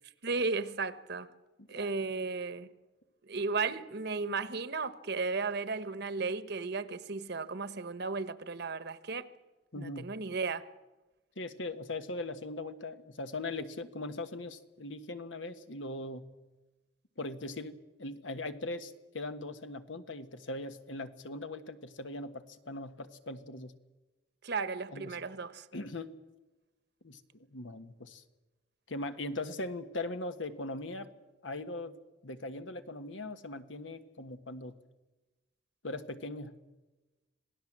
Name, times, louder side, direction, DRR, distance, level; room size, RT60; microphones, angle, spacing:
voice 1, 0.2-1.3 1.7-2.7 3.3-9.3 9.8-10.6 24.4-25.7, right 4 dB, 60° right, 1.1 m, -34 dB
voice 2, 9.7-10.1 11.4-16.3 17.2-23.7 24.9-25.2 25.7-26.1 27.0-28.2 28.9-31.1 31.4-34.8 35.8-36.6, left 2 dB, 85° left, 1.5 m, -40 dB
26.5 x 17.5 x 7.5 m
head